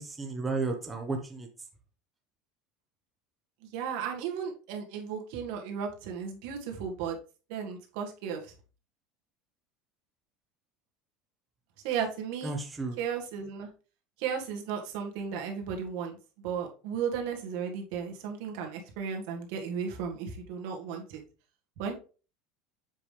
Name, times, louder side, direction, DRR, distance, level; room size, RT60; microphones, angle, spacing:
voice 1, 0.0-1.5 12.4-13.0, right 3 dB, 15° right, 3 dB, 1.2 m, -33 dB
voice 2, 3.7-7.2 7.5-8.5 11.8-12.5 13.0-13.7 14.2-16.2 16.4-21.2 21.8-21.9, right 7 dB, 70° right, 3 dB, 1.9 m, -35 dB
7.6 x 5.2 x 3.4 m, 0.35 s
supercardioid pair, 145°, 0 cm